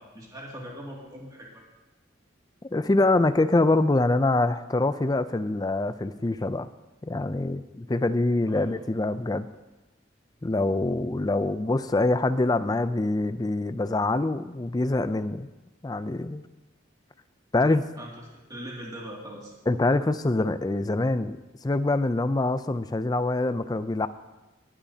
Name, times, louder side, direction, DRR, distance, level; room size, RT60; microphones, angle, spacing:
voice 1, 0.1-1.6 8.5-8.8 18.0-19.6, equal, 20° right, -3 dB, 2.3 m, -41 dB
voice 2, 2.7-6.7 7.0-9.5 10.4-15.5 15.8-16.5 17.5-17.9 19.7-21.4 21.6-24.1, left 2 dB, 20° left, 12 dB, 0.4 m, -25 dB
19.5 x 10.0 x 2.8 m, 1.1 s
head